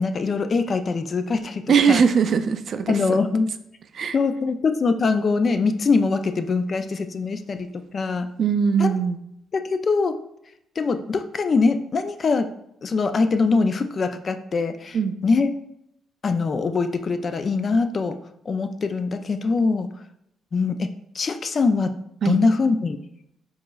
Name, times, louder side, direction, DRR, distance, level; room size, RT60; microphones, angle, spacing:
voice 1, 0.0-2.0 2.9-3.5 4.1-8.3 8.8-8.9 9.5-10.2 10.8-12.5 12.8-15.5 16.2-18.2 18.5-19.9 20.5-22.0 22.2-23.0, left 4 dB, 45° left, 9 dB, 0.3 m, -23 dB
voice 2, 1.7-3.2 3.9-4.2 8.4-9.2 14.9-15.1 22.2-22.4, right 6 dB, 55° right, 9 dB, 0.3 m, -20 dB
4.7 x 3.0 x 2.3 m, 0.77 s
cardioid pair, 90°, 0 cm